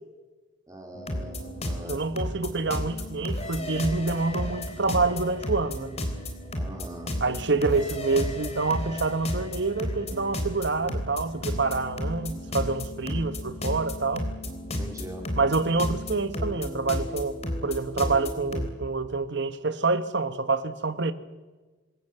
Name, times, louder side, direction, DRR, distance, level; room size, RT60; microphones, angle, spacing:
voice 1, 0.7-2.2 6.5-7.1 14.7-15.3, equal, 15° right, 4.3 m, -42 dB
sound 1, 0.9-18.7, left 1 dB, 30° left, 3.7 m, -33 dB
voice 2, 1.9-5.9 7.2-14.3 15.3-21.1, right 3 dB, 60° right, 1.4 m, -27 dB
26.5 x 21.0 x 8.1 m
head